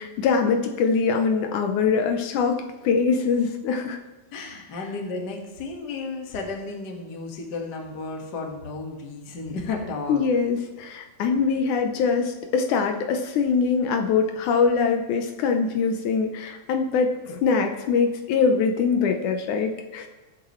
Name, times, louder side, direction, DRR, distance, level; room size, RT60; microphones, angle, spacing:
voice 1, 0.0-2.6 2.8-4.0 10.1-20.1, left 5 dB, 75° left, 5 dB, 2.2 m, -23 dB
voice 2, 4.3-10.2, left 3 dB, 40° left, 1 dB, 1.8 m, -33 dB
20.0 x 7.9 x 3.2 m, 1.1 s
omnidirectional pair, 3.6 m